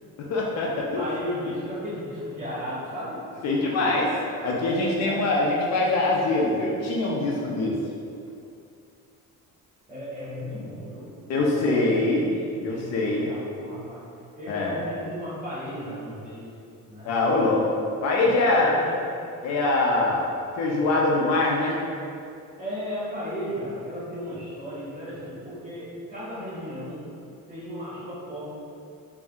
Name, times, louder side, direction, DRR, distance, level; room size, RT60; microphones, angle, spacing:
voice 1, 0.2-1.0 3.4-4.1 4.4-7.8 11.3-12.3 12.6-13.3 14.5-14.8 17.0-17.7 18.0-18.8 19.4-20.3 20.5-21.8, left 2 dB, 55° left, -3 dB, 0.4 m, -23 dB
voice 2, 0.9-3.9 4.9-5.2 9.9-11.8 12.3-14.0 14.4-16.5 16.9-17.1 18.1-19.0 19.9-20.1 22.6-27.1 27.5-28.5, equal, 25° right, -11 dB, 1.0 m, -35 dB
2.5 x 2.1 x 3.5 m, 2.5 s
cardioid pair, 175°, 31 cm